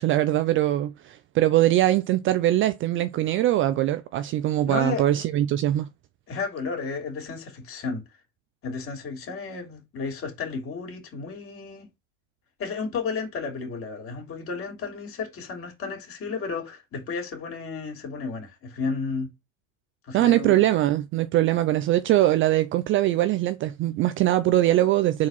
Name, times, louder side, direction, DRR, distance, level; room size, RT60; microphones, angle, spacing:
voice 1, 0.0-5.9 20.1-25.3, right 14 dB, 35° right, 0.4 m, -22 dB
voice 2, 4.7-5.0 6.3-8.0 8.6-11.9 12.6-19.3 20.0-20.6, left 4 dB, 35° left, 3.1 m, -32 dB
4.8 x 4.1 x 5.4 m
supercardioid pair, 115°, 38 cm